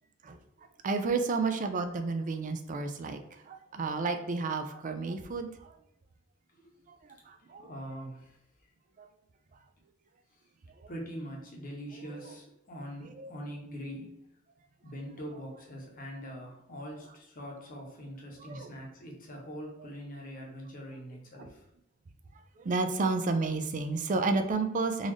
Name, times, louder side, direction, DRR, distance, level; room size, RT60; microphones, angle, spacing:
voice 1, 0.8-5.7 6.9-7.0 7.3-7.7 9.0-9.1 10.8-10.9 12.1-12.3 13.2-13.3 18.4-18.7 21.4-21.5 22.6-25.1, right 3 dB, 40° right, 7 dB, 0.4 m, -31 dB
voice 2, 7.2-8.4 10.3-10.5 10.9-14.3 14.8-21.6, equal, 45° left, -1 dB, 1.0 m, -43 dB
3.9 x 2.5 x 3.1 m, 0.83 s
head